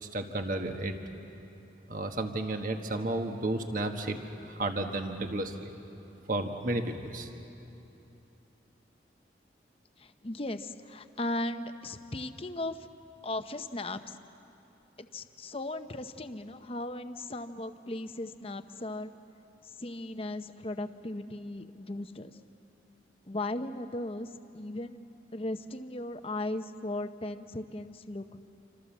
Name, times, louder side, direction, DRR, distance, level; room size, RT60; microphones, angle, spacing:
voice 1, 0.0-1.0 1.9-4.2 4.5-5.7 6.3-7.3, right 2 dB, 45° right, 5 dB, 1.5 m, -32 dB
voice 2, 10.0-12.9 13.2-14.2 15.0-19.1 19.6-22.4 23.3-25.0 25.3-28.4, left 2 dB, 30° left, 9 dB, 0.8 m, -37 dB
28.0 x 25.5 x 7.3 m, 2.9 s
head